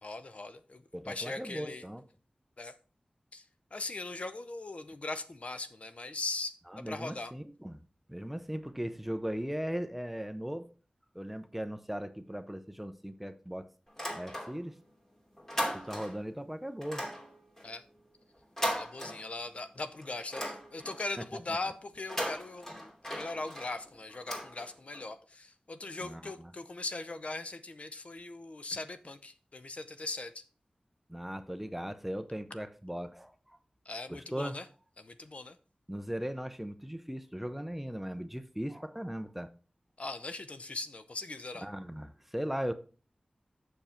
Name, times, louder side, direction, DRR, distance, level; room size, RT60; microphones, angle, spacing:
voice 1, 0.0-1.9 2.6-2.7 3.3-3.5 3.7-7.3 17.6-17.8 18.7-30.4 33.8-34.7 35.0-35.6 40.0-41.7, left 2 dB, 55° left, 0.7 m, -40 dB
voice 2, 0.9-2.0 6.7-7.8 8.1-10.7 11.1-13.7 14.1-14.8 15.7-17.0 21.2-21.6 26.0-26.5 31.1-33.6 34.1-34.6 35.9-39.5 41.6-42.7, equal, 5° right, 0.7 m, -38 dB
sound 1, 13.9-14.8 15.1-16.3 16.8-19.6 20.0-21.1 21.9-25.0, equal, 20° left, 2.8 m, -38 dB
7.1 x 6.6 x 4.4 m
wide cardioid pair, 80°, 3 cm